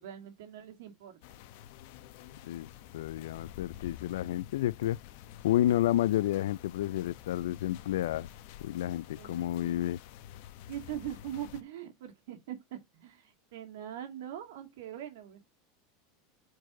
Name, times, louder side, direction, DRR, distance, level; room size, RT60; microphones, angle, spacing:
voice 1, 0.0-1.2 9.1-9.8 10.7-15.4, right 11 dB, 75° right, 2.1 m, -42 dB
sound 1, 1.2-11.6, left 12 dB, 55° left, 0.8 m, -49 dB
voice 2, 2.9-5.0 5.4-8.3 8.6-10.0, left 13 dB, 90° left, 0.3 m, -30 dB
4.7 x 4.5 x 5.9 m
supercardioid pair, 165°, 0 cm